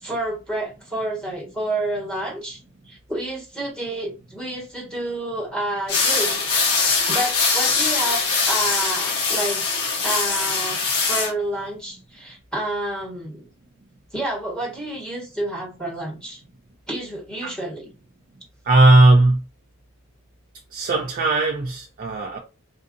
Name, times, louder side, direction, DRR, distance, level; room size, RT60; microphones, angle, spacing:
voice 1, 0.0-2.6 2.9-6.4 7.0-9.7 10.0-13.5 14.1-16.4 16.9-17.9, right 1 dB, 5° left, 1.5 m, -29 dB
sound 1, 5.9-11.3, left 4 dB, 85° left, 1.2 m, -22 dB
voice 2, 18.6-19.4 20.7-22.4, right 2 dB, 40° right, 0.5 m, -17 dB
3.7 x 2.7 x 2.6 m
head